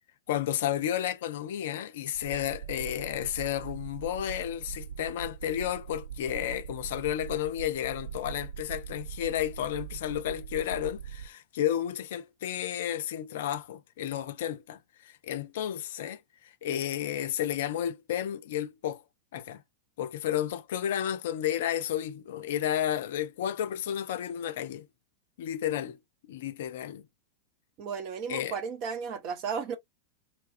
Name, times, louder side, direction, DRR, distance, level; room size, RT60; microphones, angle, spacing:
voice 1, 0.3-19.0 19.3-19.6 20.0-24.9 25.4-26.0 26.3-27.0 28.3-28.5, left 11 dB, 55° left, 0.4 m, -32 dB
sound 1, 2.1-11.3, right 9 dB, 65° right, 0.6 m, -42 dB
voice 2, 27.8-29.8, right 6 dB, 40° right, 0.9 m, -34 dB
2.9 x 2.3 x 2.6 m
figure-of-eight pair, 90°, 0 cm